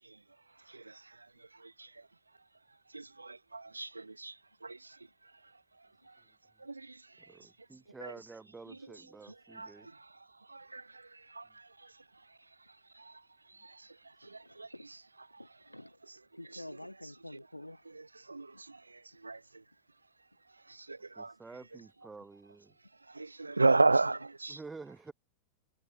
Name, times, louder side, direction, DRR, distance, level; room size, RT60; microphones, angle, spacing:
voice 1, 2.9-4.3 4.6-4.8 6.6-7.0 8.0-8.1 9.5-9.7 10.5-10.8 11.3-11.5 13.1-13.2 13.6-13.7 14.3-14.7 18.3-18.8 19.2-19.4 20.9-21.3 23.1-24.6, right 3 dB, 80° right, 0.6 m, -32 dB
voice 2, 7.3-9.9 21.1-22.7 24.5-25.1, right 4 dB, 10° right, 5.0 m, -49 dB
voice 3, 14.4-14.9 15.4-16.0 16.3-17.8 18.5-18.6 23.5-24.2, left 1 dB, 85° left, 4.1 m, -48 dB
figure-of-eight pair, 90°, 0 cm